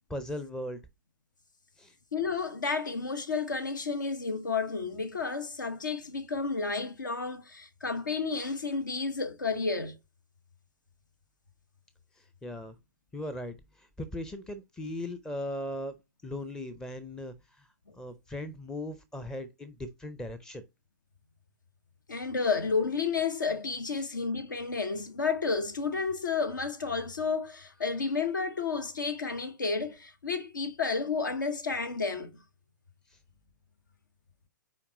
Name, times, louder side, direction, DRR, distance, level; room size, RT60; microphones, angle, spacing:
voice 1, 0.1-0.8 1.8-1.9 12.1-12.8 13.1-16.0 16.2-17.7 18.0-20.7 33.1-33.2, left 1 dB, 5° left, 0.5 m, -38 dB
voice 2, 2.1-10.0 22.1-32.3, left 4 dB, 70° left, 1.1 m, -31 dB
5.8 x 4.7 x 5.0 m
figure-of-eight pair, 115°, 11 cm